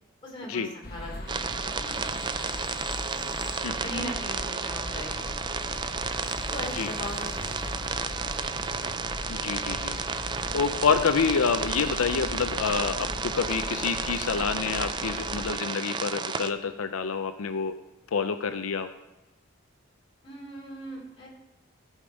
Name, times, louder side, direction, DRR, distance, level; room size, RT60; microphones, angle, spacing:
voice 1, 0.2-1.3 1.6-3.4 3.8-5.4 6.5-8.6 20.2-21.3, equal, 25° left, -3 dB, 2.9 m, -40 dB
sound 1, 0.8-15.5, left 2 dB, 45° left, 1.0 m, -39 dB
sound 2, 1.3-16.5, right 5 dB, 20° right, 0.3 m, -32 dB
voice 2, 9.3-10.0 10.5-17.7 18.1-18.9, left 5 dB, 90° left, 9 dB, 0.5 m, -27 dB
13.5 x 5.1 x 5.2 m, 1.1 s
head